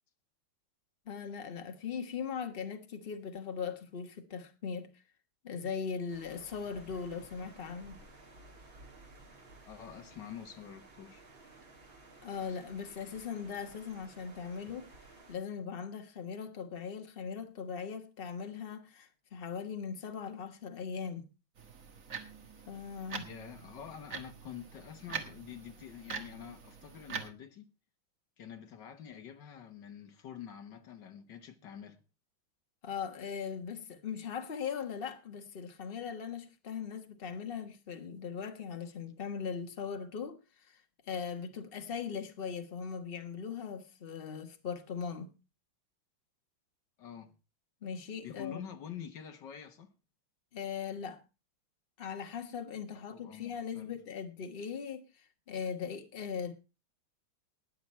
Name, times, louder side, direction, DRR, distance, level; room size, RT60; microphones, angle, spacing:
voice 1, 1.1-4.9 5.4-8.0 12.2-14.9 15.3-21.3 22.7-23.3 32.8-40.7 41.1-45.3 47.8-48.7 50.5-51.2 52.0-56.5, left 6 dB, 30° left, 1.3 m, -39 dB
sound 1, 6.1-15.4, right 2 dB, 65° right, 3.7 m, -55 dB
voice 2, 9.6-11.2 23.2-27.7 28.4-32.0 47.0-47.3 48.2-49.9 52.9-53.9, left 9 dB, 60° left, 1.7 m, -47 dB
sound 2, 21.6-27.3, right 5 dB, 40° right, 1.7 m, -44 dB
20.0 x 7.2 x 4.4 m
omnidirectional pair, 2.3 m